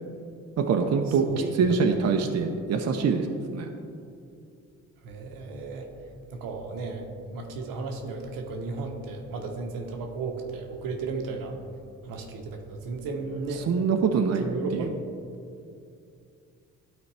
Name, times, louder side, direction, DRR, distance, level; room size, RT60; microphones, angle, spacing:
voice 1, 0.6-1.3 1.6-3.3 3.5-3.7 13.7-14.5 14.7-14.9, right 5 dB, 50° right, 4 dB, 0.7 m, -24 dB
voice 2, 1.1-1.8 5.0-5.9 6.3-11.6 12.0-13.7 14.4-14.9, right 4 dB, 80° right, 3 dB, 1.0 m, -34 dB
12.0 x 4.2 x 3.3 m, 2.4 s
supercardioid pair, 60°, 34 cm